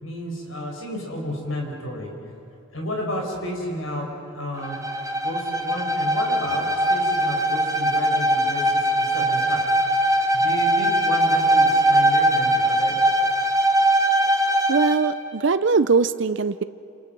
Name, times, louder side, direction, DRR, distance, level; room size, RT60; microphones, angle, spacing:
voice 1, 0.0-2.1 2.7-4.8 5.1-9.6 10.3-13.0, left 1 dB, 80° left, 0 dB, 5.8 m, -32 dB
Bowed string instrument, 4.6-15.1, right 1 dB, 15° right, 1.3 m, -21 dB
voice 2, 14.7-16.6, right 4 dB, 60° right, 13 dB, 0.6 m, -21 dB
28.0 x 27.5 x 6.1 m, 2.8 s
head